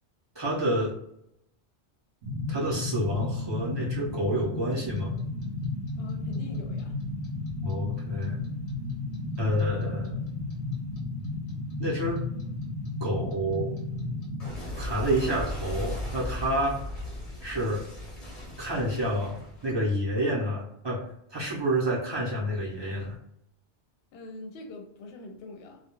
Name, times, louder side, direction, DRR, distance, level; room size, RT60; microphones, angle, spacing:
voice 1, 0.3-0.9 2.5-5.2 7.6-8.4 9.4-10.2 11.8-12.2 13.0-13.7 14.8-16.8 17.4-17.8 18.6-23.2, equal, 30° right, -5 dB, 0.6 m, -29 dB
sound 1, 2.2-14.5, left 2 dB, 75° right, 0.8 m, -33 dB
Clock, 4.7-7.7 8.0-11.0 11.2-20.1, left 1 dB, 40° left, 0.8 m, -37 dB
voice 2, 6.0-7.0 24.1-25.8, left 2 dB, 70° left, 3 dB, 0.8 m, -43 dB
2.3 x 2.2 x 2.9 m, 0.78 s
omnidirectional pair, 1.1 m